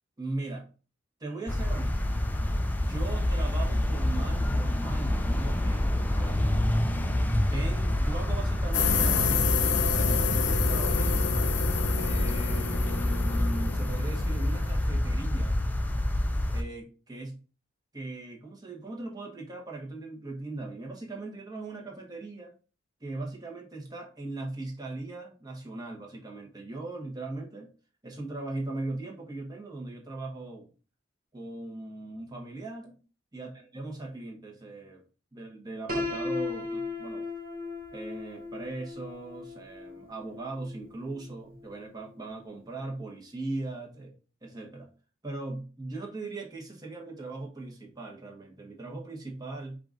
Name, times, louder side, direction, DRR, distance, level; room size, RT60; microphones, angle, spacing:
voice 1, 0.2-0.7 1.2-2.0 2.7-6.7 7.5-11.3 12.0-15.6 16.5-17.4 17.9-22.5 23.0-27.7 28.0-30.7 31.3-33.0 33.3-35.0 35.3-37.2 37.9-44.1 44.4-44.9 45.2-49.8, right 2 dB, 20° right, 0 dB, 1.0 m, -39 dB
sound 1, 1.5-16.6, left 1 dB, 10° left, 0.3 m, -27 dB
sound 2, 8.7-14.9, left 7 dB, 65° left, 0.5 m, -29 dB
Piano, 35.9-41.8, left 3 dB, 45° right, 0.8 m, -37 dB
4.8 x 2.5 x 3.8 m, 0.35 s
head